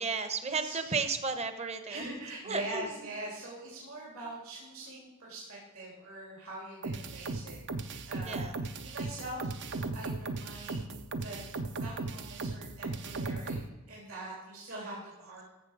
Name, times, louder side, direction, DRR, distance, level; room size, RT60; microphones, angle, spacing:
voice 1, 0.0-2.0 2.4-2.8 8.2-8.6, right 4 dB, 30° right, 9 dB, 0.9 m, -33 dB
voice 2, 0.6-0.9 1.9-7.6 8.1-11.4 11.8-13.6 13.9-15.5, right 2 dB, 75° right, -4 dB, 3.4 m, -43 dB
sound 1, 6.8-13.7, right 3 dB, 55° right, 0.7 m, -37 dB
14.0 x 6.9 x 4.9 m, 1.1 s
head